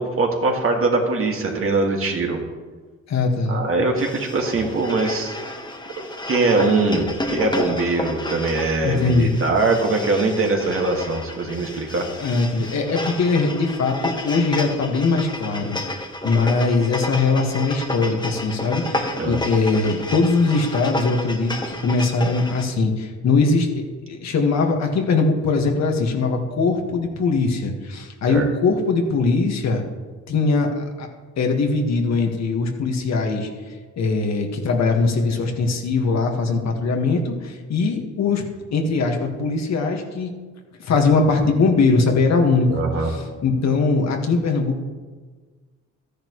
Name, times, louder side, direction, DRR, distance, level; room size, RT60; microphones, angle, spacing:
voice 1, 0.0-2.4 3.5-5.3 6.0-12.0 19.2-19.4 28.3-28.5 42.7-43.1, right 3 dB, 45° right, 1 dB, 2.1 m, -22 dB
voice 2, 3.1-3.6 8.8-9.3 12.2-29.8 30.3-31.1 31.4-33.5 34.0-38.4 38.7-40.3 40.8-44.8, left 3 dB, 60° left, 2 dB, 1.8 m, -21 dB
sound 1, 4.0-22.6, left 1 dB, 15° left, 1.3 m, -31 dB
13.0 x 10.0 x 3.2 m, 1.4 s
cardioid pair, 90°, 30 cm